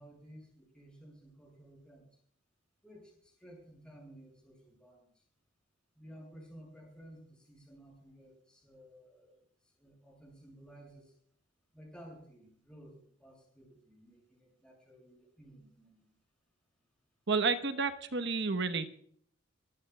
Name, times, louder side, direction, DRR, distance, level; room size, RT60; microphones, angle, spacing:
voice 1, 0.0-2.1 2.8-5.1 6.0-9.4 9.8-11.1 11.7-16.1, equal, 5° left, -2 dB, 7.3 m, -55 dB
voice 2, 17.3-18.9, right 4 dB, 60° right, 9 dB, 1.1 m, -30 dB
22.5 x 15.5 x 2.4 m, 0.62 s
head